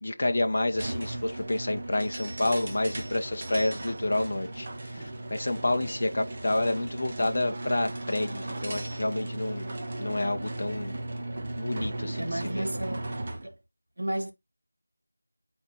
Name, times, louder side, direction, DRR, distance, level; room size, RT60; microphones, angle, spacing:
voice 1, 0.0-9.7 10.0-11.0 11.6-12.3 12.5-12.7, left 1 dB, 40° left, 0.6 m, -29 dB
sound 1, 0.7-13.5, right 2 dB, 25° right, 0.9 m, -36 dB
voice 2, 12.2-13.1 13.4-13.6 14.0-14.3, right 1 dB, 50° right, 1.4 m, -32 dB
8.0 x 4.3 x 2.9 m
figure-of-eight pair, 170°, 0 cm